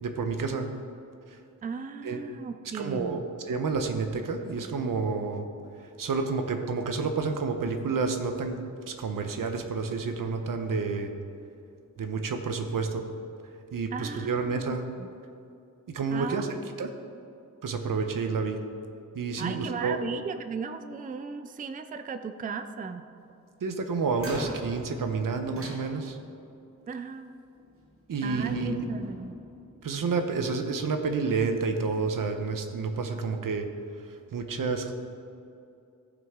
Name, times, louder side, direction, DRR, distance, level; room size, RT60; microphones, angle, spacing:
voice 1, 0.0-0.7 2.0-2.2 2.7-5.5 6.0-8.6 8.9-11.1 12.0-13.0 13.7-14.8 15.9-16.9 17.6-18.6 19.1-20.0 23.6-26.2 28.1-28.9 29.8-33.7 34.1-34.9, right 4 dB, 85° right, 6 dB, 0.9 m, -29 dB
voice 2, 1.6-3.3 13.9-15.1 16.1-16.5 19.4-23.1 26.9-27.3 28.2-29.4, right 5 dB, 25° right, 10 dB, 0.4 m, -36 dB
sound 1, 24.2-26.5 27.6-27.9 28.3-30.0, right 1 dB, 45° right, 1.5 m, -42 dB
17.0 x 6.0 x 3.7 m, 2.6 s
wide cardioid pair, 160°, 32 cm